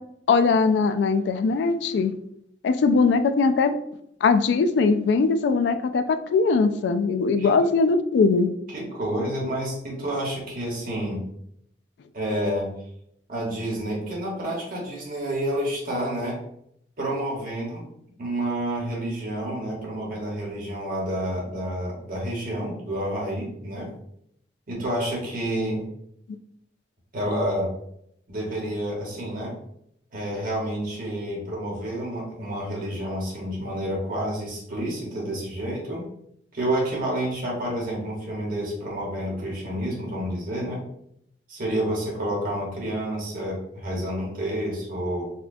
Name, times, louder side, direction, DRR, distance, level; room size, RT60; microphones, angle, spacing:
voice 1, 0.3-2.1 2.6-3.7 4.2-8.5, left 4 dB, 80° left, 10 dB, 0.3 m, -20 dB
voice 2, 8.7-11.3 12.1-12.8 13.3-16.4 17.0-17.9 18.2-23.9 24.7-25.8 27.1-27.7 28.3-29.6 30.1-36.0 36.5-40.8 41.5-45.3, right 1 dB, 55° right, -3 dB, 1.2 m, -29 dB
4.2 x 2.3 x 2.6 m, 0.73 s
head